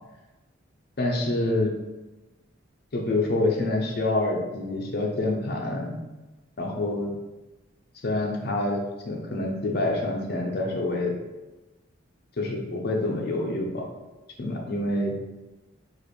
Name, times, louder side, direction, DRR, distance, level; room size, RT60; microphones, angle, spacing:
voice 1, 1.0-1.7 2.9-6.0 6.6-7.1 8.0-11.1 12.4-13.9 14.4-15.1, left 2 dB, 50° left, 0 dB, 0.5 m, -27 dB
3.3 x 2.5 x 4.0 m, 1.1 s
head